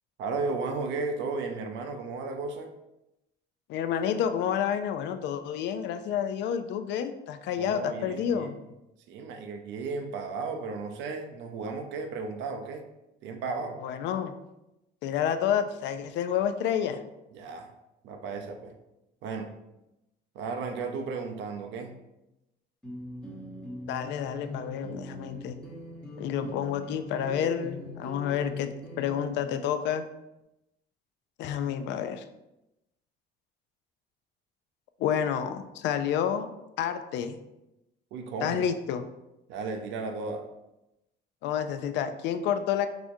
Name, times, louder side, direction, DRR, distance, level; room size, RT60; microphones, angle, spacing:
voice 1, 0.2-2.7 7.6-8.5 9.1-12.9 13.2-13.8 17.3-17.7 18.0-18.7 19.2-19.5 20.3-22.0 38.1-38.6 39.5-40.5, right 4 dB, 80° right, 5 dB, 0.6 m, -34 dB
voice 2, 3.7-8.6 13.8-14.3 15.0-17.0 23.9-25.6 26.2-30.0 31.4-32.2 35.0-36.5 36.8-37.4 38.4-39.0 41.4-42.9, left 8 dB, 75° left, 10 dB, 0.4 m, -29 dB
sound 1, 22.8-29.2, left 1 dB, 5° left, 0.8 m, -41 dB
4.9 x 3.5 x 2.6 m, 0.92 s
cardioid pair, 180°, 18 cm